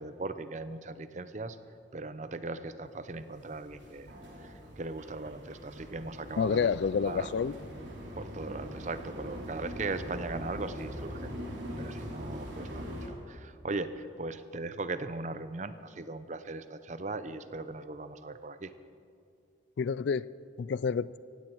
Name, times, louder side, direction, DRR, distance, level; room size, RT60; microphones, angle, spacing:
voice 1, 0.0-1.6 1.9-4.1 4.4-6.7 7.0-7.3 8.1-11.4 11.8-18.7, right 3 dB, 40° right, 12 dB, 0.6 m, -39 dB
sound 1, 3.1-13.1, equal, 75° right, 2.9 m, -42 dB
voice 2, 6.4-7.6 19.8-20.3 20.6-21.2, left 6 dB, 65° left, 19 dB, 0.3 m, -28 dB
17.0 x 16.5 x 4.6 m, 2.4 s
head